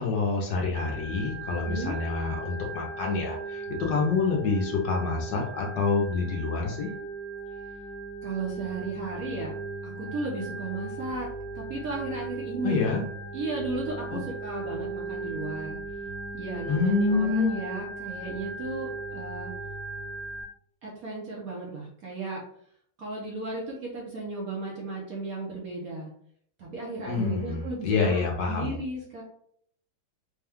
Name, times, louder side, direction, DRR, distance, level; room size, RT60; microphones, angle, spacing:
voice 1, 0.0-6.9 12.6-13.0 14.1-14.2 16.7-17.5 27.1-28.7, left 4 dB, 65° left, -1 dB, 1.4 m, -27 dB
Organ, 0.7-20.4, right 3 dB, 90° right, 1.9 m, -37 dB
voice 2, 8.2-9.5 9.8-11.3 11.5-12.9 13.3-15.8 16.3-19.5 20.8-22.4 23.0-26.1 26.6-29.2, right 2 dB, 55° right, -3 dB, 1.1 m, -35 dB
4.3 x 2.3 x 3.5 m, 0.64 s
omnidirectional pair, 2.2 m